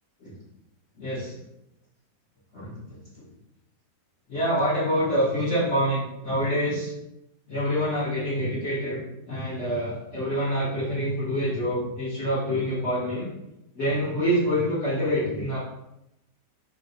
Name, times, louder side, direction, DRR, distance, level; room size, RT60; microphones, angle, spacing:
voice 1, 1.0-1.4 2.5-3.0 4.3-6.9 7.5-9.0 9.3-13.3 13.7-15.6, equal, 50° left, -9 dB, 0.9 m, -26 dB
3.2 x 2.5 x 3.8 m, 0.86 s
omnidirectional pair, 1.8 m